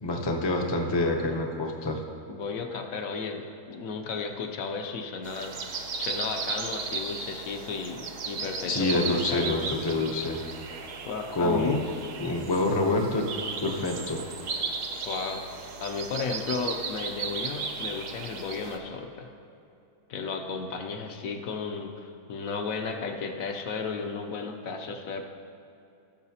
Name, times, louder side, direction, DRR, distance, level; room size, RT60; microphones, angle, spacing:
voice 1, 0.0-2.0 8.7-10.4 11.3-11.8 12.2-13.2 13.6-14.2, left 2 dB, 30° left, 1 dB, 0.4 m, -27 dB
voice 2, 2.3-9.7 11.1-11.8 15.0-15.4 15.8-19.3 20.1-25.2, left 4 dB, 70° left, 4 dB, 1.1 m, -34 dB
sound 1, 5.2-18.8, right 5 dB, 65° right, 1.0 m, -36 dB
16.0 x 7.0 x 2.8 m, 2.6 s
omnidirectional pair, 1.6 m